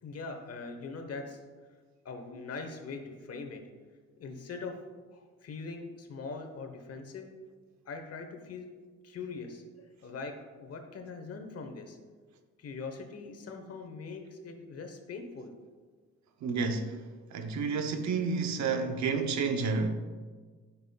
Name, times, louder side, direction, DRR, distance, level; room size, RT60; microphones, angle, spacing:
voice 1, 0.0-1.4 2.0-3.6 4.2-4.8 5.1-7.3 7.8-8.7 9.0-12.0 12.6-15.5, left 4 dB, 55° left, 1.0 m, -42 dB
voice 2, 16.4-17.0 17.3-19.9, right 4 dB, 70° right, 0.7 m, -30 dB
10.0 x 5.8 x 2.3 m
cardioid pair, 90°, 30 cm